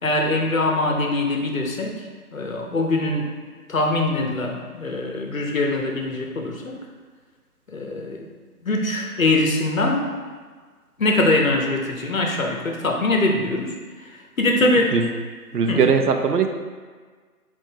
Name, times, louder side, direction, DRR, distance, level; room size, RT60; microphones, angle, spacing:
voice 1, 0.0-2.0 2.3-3.3 3.7-6.7 7.7-8.3 8.6-10.1 11.0-14.9 15.7-15.8, left 2 dB, 60° left, 1 dB, 0.8 m, -22 dB
voice 2, 15.5-16.5, right 6 dB, 85° right, 6 dB, 0.6 m, -19 dB
7.2 x 2.6 x 2.7 m, 1.5 s
figure-of-eight pair, 165°, 46 cm